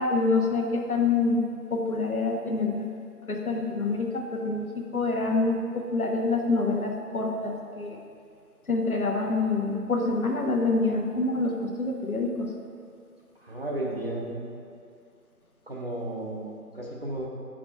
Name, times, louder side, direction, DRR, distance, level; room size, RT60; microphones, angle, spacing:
voice 1, 0.0-1.4 1.7-2.8 3.3-8.0 8.7-12.5, left 3 dB, 60° left, 1 dB, 1.1 m, -26 dB
voice 2, 13.4-14.5 15.7-17.3, right 1 dB, 40° right, -3 dB, 0.9 m, -34 dB
8.6 x 4.9 x 3.5 m, 2.3 s
figure-of-eight pair, 160°, 48 cm